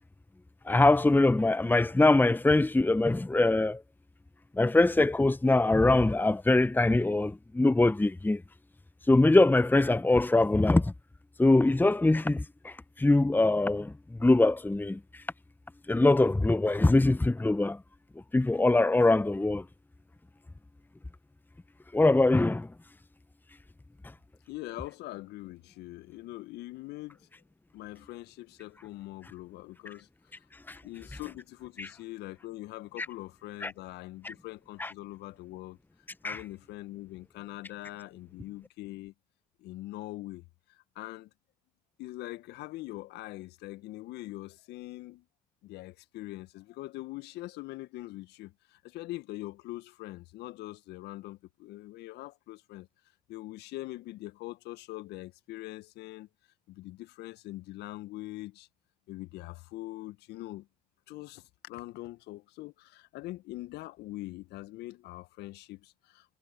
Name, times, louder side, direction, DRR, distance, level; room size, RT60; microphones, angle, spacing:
voice 1, 0.7-3.8 4.6-8.4 9.1-10.9 11.4-13.9 14.2-15.0 15.9-17.8 18.3-19.6 21.9-22.7 30.7-30.8 31.8-31.9 33.0-33.1 33.6-33.7 34.2-34.3 34.8-34.9 36.2-36.4, left 2 dB, 10° left, 1.0 m, -23 dB
voice 2, 24.5-27.3 27.7-30.1 30.8-35.8 36.2-39.1 39.6-40.4 40.7-41.3 42.0-45.2 45.6-52.9 53.3-56.3 56.7-58.7 59.1-60.7 61.1-66.4, left 18 dB, 65° left, 1.9 m, -43 dB
hypercardioid pair, 50°, 18 cm